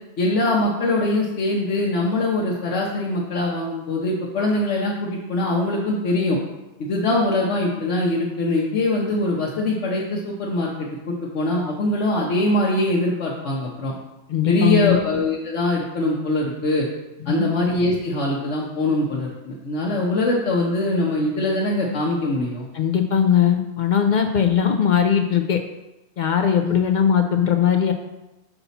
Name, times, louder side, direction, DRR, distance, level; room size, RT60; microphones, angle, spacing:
voice 1, 0.2-6.4 6.8-13.9 14.5-16.9 17.3-22.7 26.6-26.8, left 1 dB, 85° left, -3 dB, 1.2 m, -22 dB
voice 2, 14.3-15.0 17.3-17.4 22.7-25.6 26.2-27.9, left 8 dB, 60° left, 5 dB, 0.5 m, -19 dB
5.7 x 5.6 x 4.0 m, 1.0 s
omnidirectional pair, 1.2 m